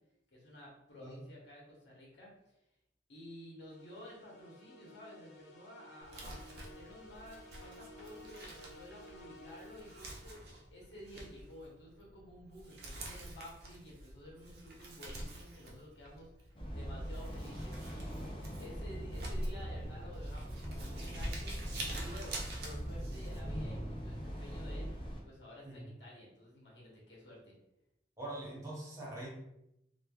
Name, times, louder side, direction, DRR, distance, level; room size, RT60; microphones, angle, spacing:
voice 1, 0.3-2.5 3.1-10.4 10.7-18.1 18.6-24.9 25.2-27.5, equal, 90° left, -4 dB, 1.0 m, -52 dB
sound 1, 3.7-10.7, left 1 dB, 75° left, 0.6 m, -55 dB
Crumpling crinkling, 6.0-23.4, right 1 dB, 60° right, 0.5 m, -46 dB
sound 2, 16.5-25.2, equal, 30° left, 0.4 m, -42 dB
voice 2, 28.2-29.3, right 1 dB, 20° right, -6 dB, 0.9 m, -43 dB
3.1 x 2.2 x 2.3 m, 0.83 s
head